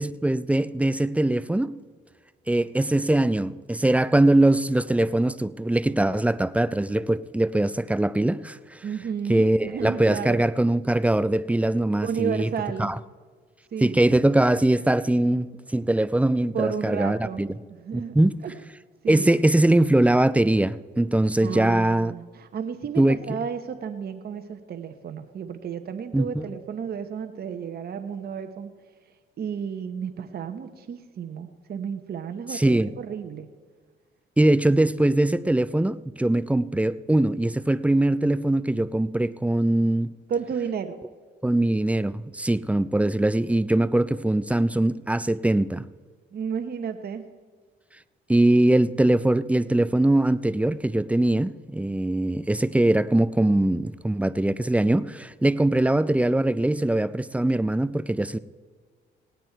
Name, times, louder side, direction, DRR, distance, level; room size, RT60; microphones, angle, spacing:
voice 1, 0.0-1.8 2.5-8.8 9.3-12.5 12.8-13.0 13.8-17.5 17.9-18.4 19.1-22.1 23.0-23.2 26.1-26.4 32.5-32.9 34.4-40.1 41.4-45.9 48.3-58.4, right 1 dB, 5° right, 0.4 m, -22 dB
voice 2, 8.8-10.4 12.0-12.9 13.7-14.0 16.5-17.4 17.8-18.1 18.4-18.5 19.0-19.3 21.4-28.7 29.4-33.5 40.3-41.0 46.3-47.3, right 7 dB, 50° right, 1.0 m, -32 dB
18.0 x 9.4 x 4.5 m
cardioid pair, 90°, 20 cm